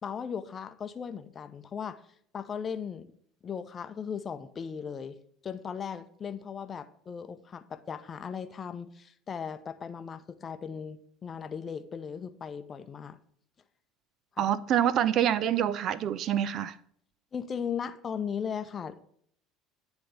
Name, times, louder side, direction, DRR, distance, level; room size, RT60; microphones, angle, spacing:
voice 1, 0.0-2.0 2.3-3.1 3.4-5.2 5.4-13.2 14.4-14.5 17.3-19.0, left 7 dB, 30° left, 0.6 m, -37 dB
voice 2, 14.4-16.7, right 10 dB, 45° right, 0.4 m, -26 dB
10.0 x 3.5 x 5.5 m
figure-of-eight pair, 65°, 0 cm